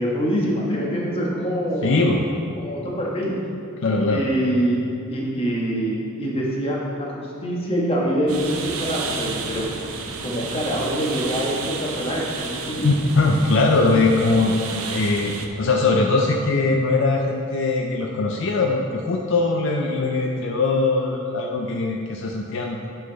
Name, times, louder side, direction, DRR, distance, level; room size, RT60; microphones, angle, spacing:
voice 1, 0.0-1.9 2.6-3.3 4.1-4.8 5.1-9.7 10.2-12.9, equal, 25° left, -3 dB, 1.3 m, -25 dB
voice 2, 1.8-2.3 3.8-4.2 12.8-14.5 14.9-22.8, left 3 dB, 60° left, 1 dB, 0.5 m, -21 dB
sound 1, 8.3-15.5, right 4 dB, 85° right, 0.7 m, -32 dB
9.6 x 5.7 x 3.9 m, 2.6 s
head